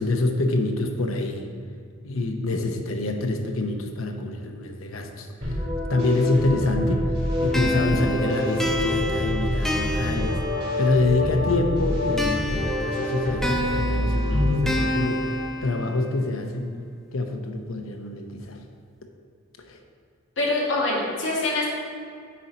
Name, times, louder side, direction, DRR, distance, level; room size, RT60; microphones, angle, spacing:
voice 1, 0.0-1.5 2.0-7.1 7.4-10.5 10.8-15.3 15.6-16.8 17.1-18.6 19.6-19.8, left 2 dB, 90° left, 4 dB, 0.8 m, -26 dB
sound 1, 5.4-15.5, left 1 dB, 55° right, 2.0 m, -26 dB
sound 2, 7.5-11.2 12.2-16.2, left 1 dB, ahead, 0.4 m, -30 dB
voice 2, 20.4-21.7, left 2 dB, 60° left, -4 dB, 1.9 m, -24 dB
8.5 x 4.3 x 5.1 m, 2.2 s
head